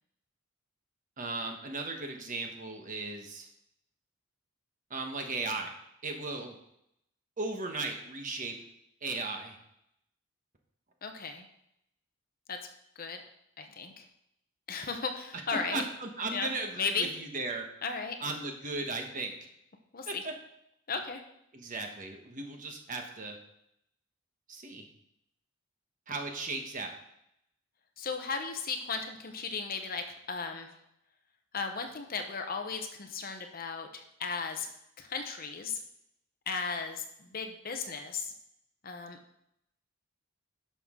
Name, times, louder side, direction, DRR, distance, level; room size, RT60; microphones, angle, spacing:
voice 1, 1.2-3.5 4.9-5.7 6.0-6.5 7.4-8.5 9.0-9.6 15.7-17.6 18.2-19.3 20.1-20.3 21.5-23.4 24.5-24.8 26.1-26.9, right 3 dB, 35° right, 3 dB, 1.2 m, -36 dB
voice 2, 11.0-11.5 12.5-12.6 13.0-13.2 13.6-14.0 14.7-15.8 16.3-16.5 16.8-17.1 17.8-18.2 19.9-20.2 20.9-21.2 28.0-30.7 31.5-34.7 35.0-35.8 36.5-38.3 38.8-39.2, left 5 dB, 40° left, 5 dB, 0.9 m, -35 dB
11.0 x 6.2 x 3.7 m, 0.77 s
head